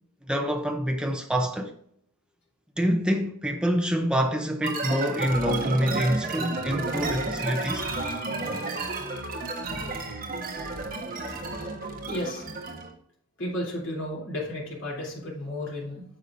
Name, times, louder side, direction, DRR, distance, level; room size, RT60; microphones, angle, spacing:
voice 1, 0.3-1.7 2.8-7.8, equal, 5° right, 0.5 m, -26 dB
sound 1, 4.6-12.9, right 2 dB, 40° right, 1.2 m, -31 dB
voice 2, 12.1-12.4 13.4-16.0, left 1 dB, 60° left, 3.2 m, -33 dB
9.3 x 6.7 x 2.6 m
head